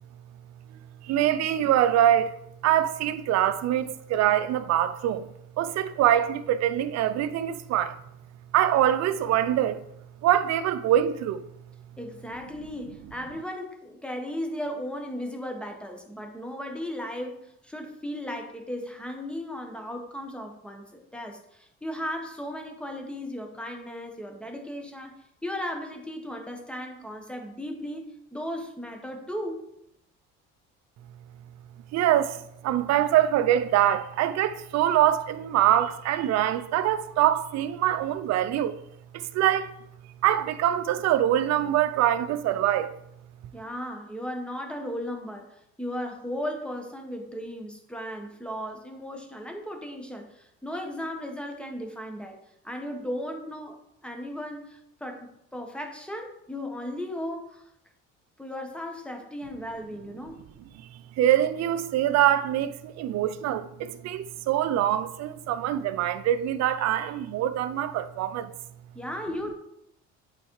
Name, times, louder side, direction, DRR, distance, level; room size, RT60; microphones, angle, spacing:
voice 1, 1.0-2.3 2.6-5.3 5.6-7.9 8.5-9.8 10.2-11.4 31.9-38.7 39.1-39.7 40.2-42.9 61.2-68.5, right 11 dB, 65° right, 0.7 m, -24 dB
voice 2, 12.0-20.8 21.1-25.1 25.4-28.0 28.3-29.6 43.5-57.7 58.4-60.4 68.9-69.5, equal, 5° left, 1.6 m, -36 dB
8.7 x 4.3 x 4.8 m
cardioid pair, 105°, 29 cm